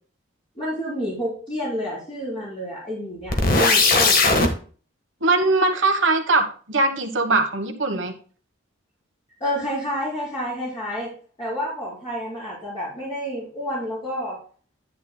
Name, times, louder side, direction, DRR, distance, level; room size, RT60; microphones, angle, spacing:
voice 1, 0.6-4.2 9.4-11.1 11.4-14.4, equal, 30° left, -8 dB, 3.9 m, -29 dB
sound 1, 3.3-4.5, left 3 dB, 45° left, 1.4 m, -17 dB
voice 2, 5.2-8.1, right 2 dB, 70° right, 4 dB, 1.3 m, -21 dB
11.0 x 8.8 x 2.2 m, 0.41 s
head